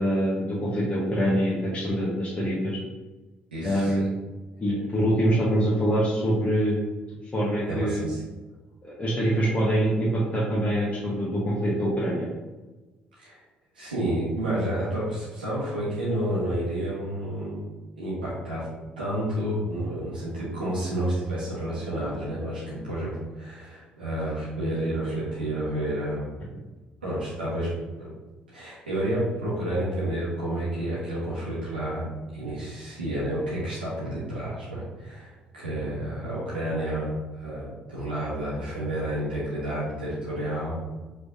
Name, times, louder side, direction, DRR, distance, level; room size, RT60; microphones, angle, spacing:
voice 1, 0.0-2.8 3.6-4.1 4.6-6.8 7.3-8.0 8.8-12.3, equal, 30° left, -6 dB, 1.1 m, -24 dB
voice 2, 3.5-4.1 7.7-8.2 13.2-13.4 13.7-17.7 18.0-18.7 19.0-26.3 27.0-27.7 28.0-28.1 28.5-32.1 32.3-40.7, right 1 dB, 85° right, -9 dB, 1.0 m, -30 dB
4.8 x 3.3 x 2.6 m, 1.2 s
figure-of-eight pair, 45°, 5 cm